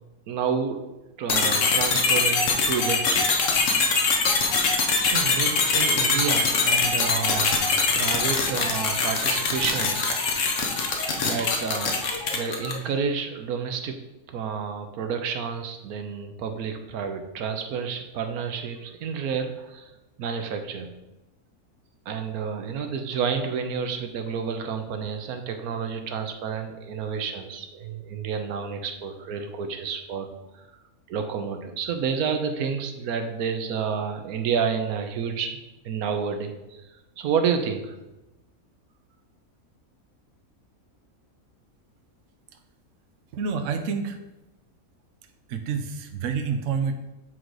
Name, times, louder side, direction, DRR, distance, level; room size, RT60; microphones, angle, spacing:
voice 1, 0.3-0.8 1.2-3.5 4.4-4.6 5.0-7.5 7.9-10.1 11.2-12.0 12.3-14.0 14.3-19.9 20.2-20.9 22.1-30.3 30.5-30.6 31.1-35.6 35.8-36.8 37.2-37.9, right 6 dB, 80° right, 6 dB, 1.2 m, -30 dB
sound 1, 1.3-12.9, left 4 dB, 60° left, 1.3 m, -23 dB
voice 2, 43.3-44.2 45.5-46.9, right 5 dB, 65° right, 6 dB, 0.9 m, -28 dB
7.7 x 3.9 x 4.7 m, 0.98 s
omnidirectional pair, 1.5 m